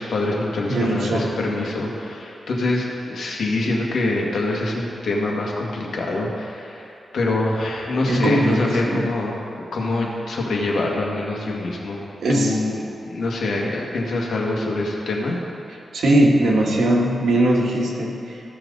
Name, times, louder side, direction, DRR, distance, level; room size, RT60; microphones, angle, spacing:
voice 1, 0.0-9.4 9.7-12.1 12.3-15.4, left 2 dB, 75° left, -2 dB, 1.7 m, -25 dB
voice 2, 0.7-1.3 8.1-9.1 12.2-12.6 15.9-18.4, right 1 dB, 90° right, -2 dB, 1.5 m, -20 dB
15.5 x 6.0 x 4.0 m, 2.6 s
wide cardioid pair, 135°, 0 cm